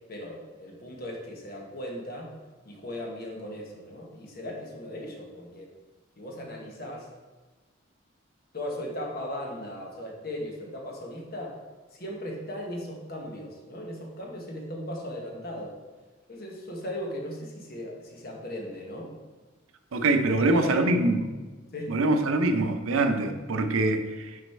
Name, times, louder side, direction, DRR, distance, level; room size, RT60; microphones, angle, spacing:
voice 1, 0.1-2.3 2.6-5.7 6.2-7.1 8.5-11.6 11.9-15.8 16.3-19.1 20.3-20.8 21.7-22.1, left 1 dB, 45° left, 0 dB, 1.2 m, -37 dB
voice 2, 19.9-21.2 21.9-24.4, right 2 dB, 90° right, 7 dB, 0.6 m, -24 dB
6.4 x 4.1 x 4.3 m, 1.3 s
head